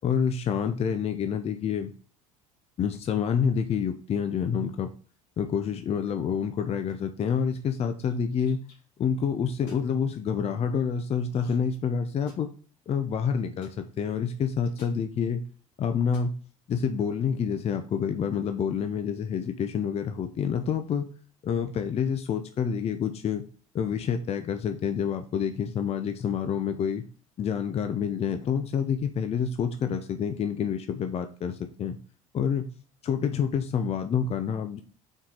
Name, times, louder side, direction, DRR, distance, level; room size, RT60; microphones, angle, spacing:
voice 1, 0.0-1.9 2.8-4.9 5.4-8.6 9.0-12.5 12.9-13.7 14.0-15.4 15.8-16.3 16.7-21.1 21.4-23.4 23.7-27.0 27.4-32.0 32.3-32.7 33.0-34.8, left 7 dB, 35° left, 8 dB, 0.7 m, -28 dB
sound 1, 6.9-7.2 8.0-8.7 9.5-9.9 11.3-11.7 12.0-12.6 13.6-13.8 14.6-15.0 16.0-16.3, left 3 dB, 50° left, 2.9 m, -53 dB
5.8 x 4.7 x 3.7 m, 0.41 s
figure-of-eight pair, 65°, 17 cm